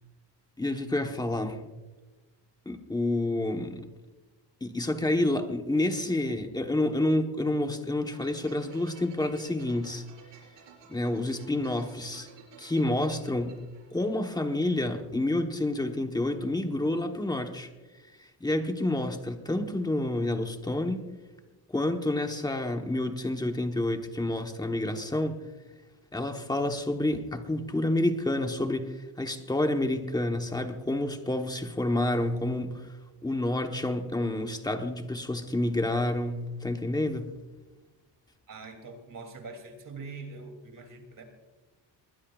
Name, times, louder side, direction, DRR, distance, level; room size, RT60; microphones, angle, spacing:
voice 1, 0.6-1.6 2.7-3.9 4.6-10.0 10.9-12.3 12.6-13.6 13.9-17.7 18.4-21.1 21.7-25.4 26.1-32.9 33.2-37.3, left 1 dB, 10° left, 1.1 m, -29 dB
sound 1, 8.0-14.6, right 5 dB, 90° right, 4.6 m, -54 dB
voice 2, 38.5-41.2, right 3 dB, 50° right, 2.9 m, -43 dB
21.0 x 20.5 x 2.4 m
wide cardioid pair, 165°, 42 cm